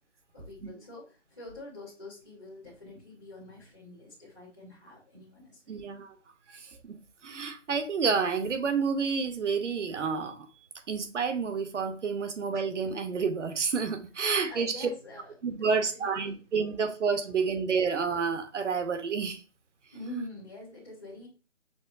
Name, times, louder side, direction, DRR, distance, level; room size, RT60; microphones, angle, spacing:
voice 1, 0.3-5.9 6.5-6.6 14.2-16.7 19.9-21.3, left 1 dB, 10° left, 0.8 m, -45 dB
voice 2, 5.7-6.1 6.5-7.0 7.2-10.5 10.9-14.9 15.4-19.4, right 5 dB, 70° right, 0.8 m, -29 dB
6.1 x 2.1 x 2.4 m
hypercardioid pair, 165°, 37 cm